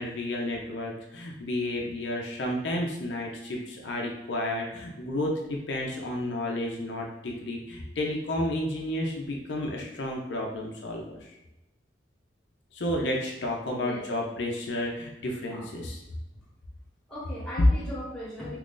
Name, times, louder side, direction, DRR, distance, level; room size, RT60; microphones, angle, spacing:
voice 1, 0.0-11.3 12.7-16.0, left 1 dB, 70° left, -1 dB, 0.5 m, -32 dB
voice 2, 13.7-14.0 15.5-15.7 17.1-18.6, equal, 5° left, -8 dB, 1.0 m, -38 dB
2.9 x 2.4 x 3.7 m, 0.94 s
head